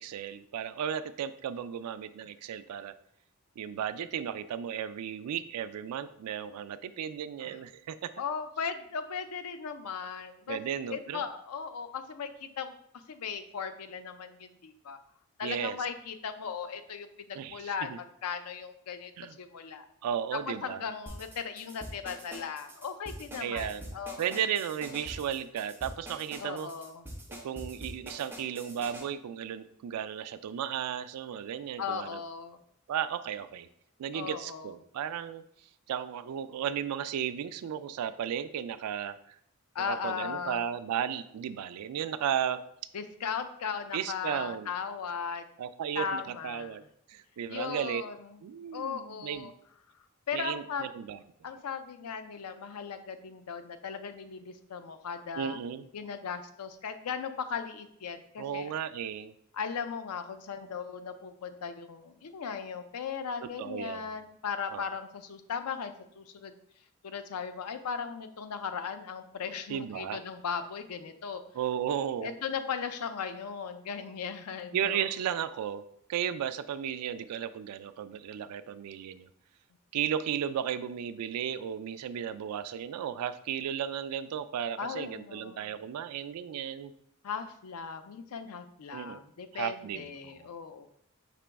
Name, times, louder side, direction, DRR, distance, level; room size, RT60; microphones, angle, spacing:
voice 1, 0.0-2.9 3.6-8.1 10.5-11.2 15.4-15.8 17.3-18.0 19.2-19.4 20.0-20.8 23.4-26.7 27.4-32.2 32.9-33.7 34.0-35.4 35.9-39.2 39.9-42.6 43.9-44.7 45.6-46.8 47.1-48.0 48.4-49.5 50.3-51.2 55.4-55.9 58.4-59.3 63.6-64.2 64.7-64.8 69.7-70.2 71.5-72.3 74.7-75.8 76.1-79.3 79.9-86.9 88.9-89.2 89.5-90.5, right 9 dB, 90° right, 13 dB, 0.3 m, -34 dB
voice 2, 8.2-10.6 10.9-12.7 13.1-15.0 15.4-19.1 19.4-19.9 20.3-24.4 26.4-27.1 31.8-32.6 34.1-34.7 39.7-40.6 42.9-45.4 45.9-46.8 47.5-48.4 48.7-49.5 50.3-50.9 51.4-55.6 55.9-58.7 59.5-66.5 67.0-71.4 72.2-75.1 84.8-85.7 87.2-90.9, left 6 dB, 85° left, 9 dB, 0.5 m, -37 dB
sound 1, 21.1-29.0, equal, 10° right, 0.8 m, -44 dB
5.0 x 3.0 x 3.4 m, 0.69 s
head